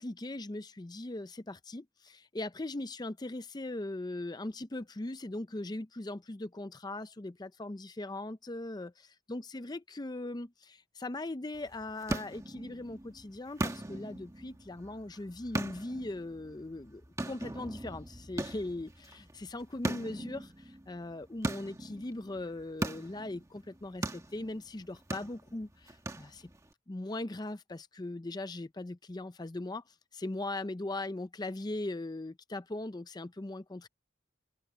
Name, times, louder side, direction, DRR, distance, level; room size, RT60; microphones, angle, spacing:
voice 1, 0.0-26.5 26.9-29.8 30.1-33.9, left 2 dB, 20° left, 0.5 m, -40 dB
sound 1, 11.5-26.7, right 1 dB, 15° right, 1.4 m, -40 dB
open air
head